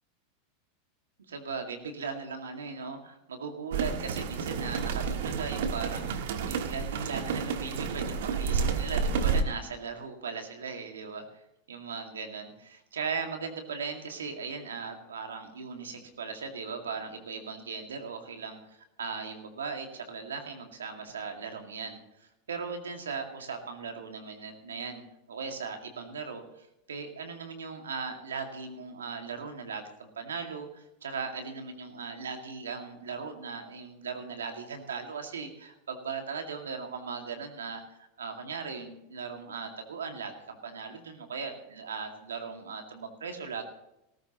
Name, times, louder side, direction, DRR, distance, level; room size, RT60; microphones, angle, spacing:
voice 1, 1.3-11.2 11.7-25.0 25.3-43.6, right 5 dB, 90° right, 4 dB, 2.1 m, -38 dB
sound 1, 3.7-9.4, right 5 dB, 70° right, 1.4 m, -30 dB
18.0 x 14.0 x 3.0 m, 0.87 s
hypercardioid pair, 95°, 0 cm